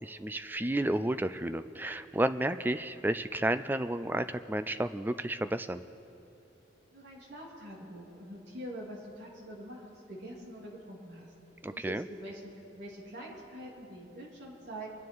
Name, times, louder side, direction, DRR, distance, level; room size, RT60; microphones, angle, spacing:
voice 1, 0.0-5.8 11.6-12.0, right 1 dB, 10° right, 11 dB, 0.3 m, -31 dB
voice 2, 6.9-11.3 11.7-14.9, right 1 dB, 60° right, -4 dB, 3.3 m, -45 dB
25.0 x 9.5 x 4.7 m, 2.9 s
head